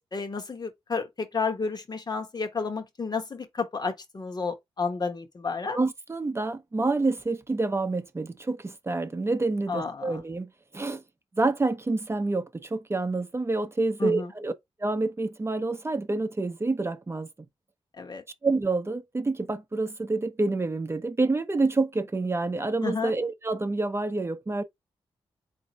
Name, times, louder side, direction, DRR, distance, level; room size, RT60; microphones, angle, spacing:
voice 1, 0.0-5.8 9.7-10.2 14.0-14.3 18.0-18.2 22.8-23.1, left 4 dB, 40° left, 1.2 m, -31 dB
voice 2, 5.7-11.0 11.4-14.5 14.8-17.3 18.4-24.6, right 3 dB, 25° right, 0.7 m, -28 dB
3.9 x 2.7 x 4.2 m
cardioid pair, 70°, 11 cm